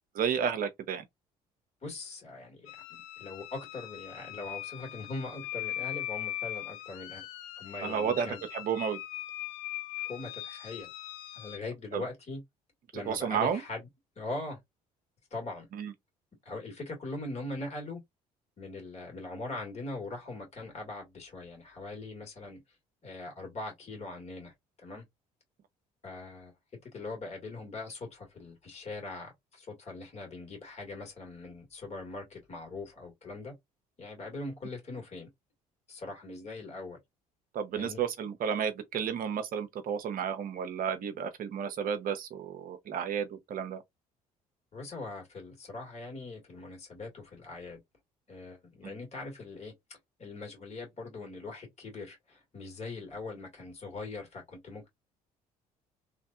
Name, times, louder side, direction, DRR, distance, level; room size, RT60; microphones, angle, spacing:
voice 1, 0.1-1.0 7.8-9.0 11.9-12.0 13.1-13.6 15.7-15.9 37.5-43.8 48.8-48.9, right 7 dB, 50° right, 0.8 m, -32 dB
voice 2, 1.8-2.7 3.2-7.3 7.6-8.4 10.0-10.9 11.3-12.4 12.9-13.9 14.2-14.6 15.3-15.7 16.5-18.0 18.6-22.6 23.0-24.5 24.8-25.0 26.0-26.5 26.9-33.5 34.0-35.3 35.9-37.0 37.7-38.0 44.7-47.8 48.3-49.7 50.2-54.9, left 2 dB, 35° left, 2.0 m, -41 dB
sound 1, 2.7-11.6, left 14 dB, 65° left, 0.4 m, -40 dB
3.1 x 2.5 x 2.4 m
figure-of-eight pair, 55°, 19 cm